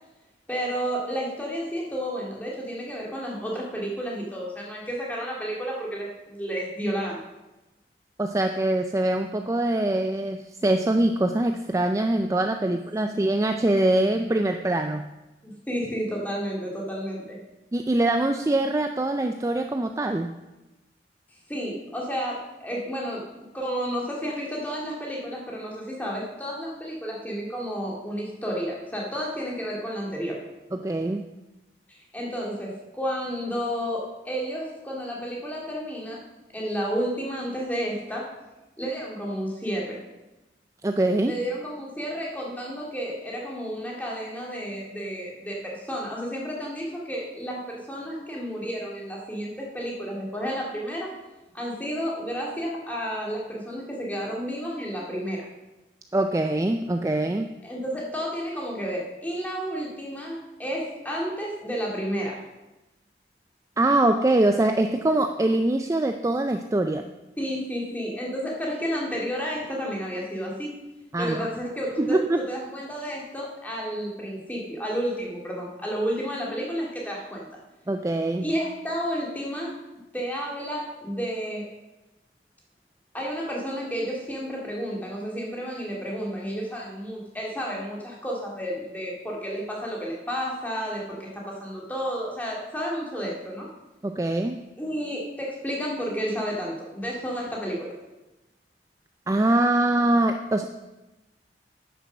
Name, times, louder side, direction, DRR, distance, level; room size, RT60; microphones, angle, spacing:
voice 1, 0.5-7.2 15.4-17.4 21.5-23.2 23.5-30.4 31.9-36.2 36.5-38.2 38.8-40.0 41.2-51.1 51.5-55.4 57.6-62.4 67.4-70.7 71.2-77.5 78.4-79.7 80.1-81.6 83.1-93.7 94.8-97.9, equal, 10° left, -3 dB, 2.2 m, -31 dB
voice 2, 8.2-15.1 17.7-20.3 30.7-31.3 40.8-41.3 56.1-57.5 63.8-67.1 71.1-71.5 72.0-72.5 77.9-78.5 94.0-94.6 99.3-100.6, right 1 dB, 15° right, 6 dB, 0.4 m, -23 dB
10.0 x 6.8 x 6.2 m, 1.0 s
head